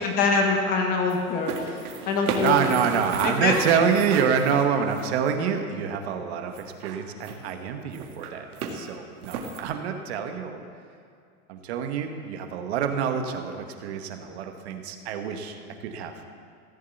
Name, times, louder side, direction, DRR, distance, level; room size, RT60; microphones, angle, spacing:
voice 1, 0.0-2.7 3.2-3.6, left 4 dB, 20° left, 3 dB, 0.9 m, -24 dB
sound 1, 1.1-5.2 6.5-7.5 7.9-8.8 9.2-9.6, right 5 dB, 75° right, 2.0 m, -34 dB
voice 2, 2.4-10.6 11.5-16.1, right 7 dB, 45° right, 6 dB, 1.2 m, -27 dB
15.5 x 7.3 x 8.1 m, 2.3 s
supercardioid pair, 170°, 44 cm